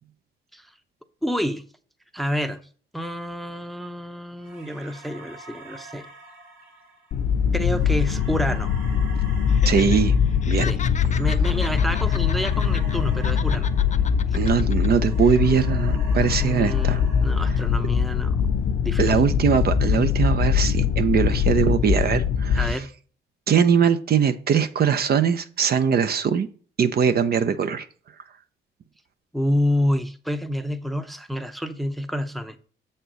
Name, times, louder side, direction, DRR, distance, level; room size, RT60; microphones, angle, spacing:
voice 1, 1.2-1.6 2.1-2.6 2.9-6.1 7.5-8.7 10.6-10.8 11.2-13.7 16.4-18.4 18.8-19.2 22.6-22.9 29.3-32.6, equal, ahead, 0.7 m, -28 dB
sound 1, 4.4-14.6 14.9-18.3, right 3 dB, 75° right, 2.6 m, -45 dB
sound 2, 7.1-22.7, left 7 dB, 70° left, 0.7 m, -22 dB
Laughter, 9.5-10.0 10.3-13.0 13.2-14.9 15.2-15.4, left 7 dB, 35° left, 0.6 m, -36 dB
voice 2, 9.6-10.2 10.5-10.7 14.3-17.0 19.0-22.7 23.5-26.5 26.8-27.9, right 7 dB, 50° right, 0.7 m, -21 dB
6.9 x 4.4 x 6.3 m
cardioid pair, 90°, 20 cm